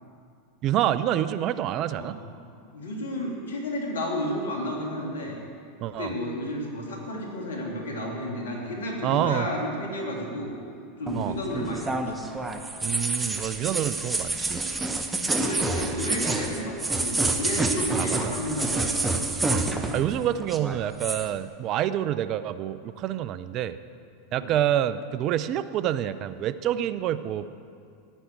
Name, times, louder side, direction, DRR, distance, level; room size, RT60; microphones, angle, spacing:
voice 1, 0.6-2.2 5.8-6.1 9.0-9.5 11.1-11.3 12.8-14.6 18.0-18.3 19.9-23.8 24.3-27.5, right 11 dB, 45° right, 14 dB, 0.5 m, -27 dB
voice 2, 2.7-5.4 6.0-10.6 11.0-12.2 15.2-19.2 24.3-24.5, left 1 dB, 80° left, -1 dB, 2.7 m, -32 dB
sound 1, 11.1-20.2 20.4-21.3, right 3 dB, 15° right, 1.1 m, -28 dB
14.5 x 10.0 x 4.7 m, 2.4 s
hypercardioid pair, 95°, 0 cm